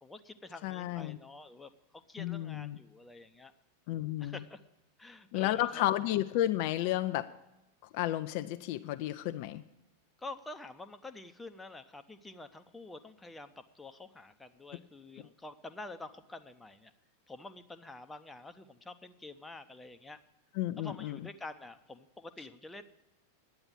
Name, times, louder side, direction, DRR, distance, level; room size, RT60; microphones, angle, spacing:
voice 1, 0.0-3.5 4.2-4.6 5.0-5.8 10.2-16.9 17.3-20.2 20.8-22.8, left 2 dB, 10° left, 9 dB, 0.7 m, -48 dB
voice 2, 0.6-1.2 2.2-2.8 3.9-4.4 5.3-7.3 7.9-9.6 20.6-21.2, left 14 dB, 45° left, 10 dB, 0.4 m, -32 dB
10.5 x 8.8 x 7.9 m, 0.97 s
figure-of-eight pair, 90°, 0 cm